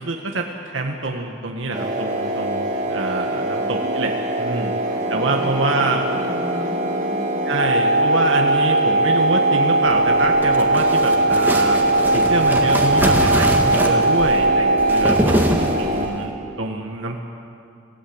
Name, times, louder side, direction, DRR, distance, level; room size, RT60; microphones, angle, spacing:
voice 1, 0.0-4.1 4.4-4.7 5.1-6.0 7.5-11.8 12.1-17.2, right 3 dB, 70° right, 2 dB, 1.7 m, -26 dB
sound 1, 1.7-16.1, right 1 dB, 35° right, 2.3 m, -24 dB
voice 2, 3.5-4.0 4.8-7.3, equal, 85° right, -3 dB, 5.3 m, -34 dB
sound 2, 7.6-15.2, right 2 dB, 55° left, 1.3 m, -19 dB
sound 3, 10.1-16.2, equal, 10° right, 1.8 m, -24 dB
27.0 x 17.0 x 8.8 m, 2.6 s
head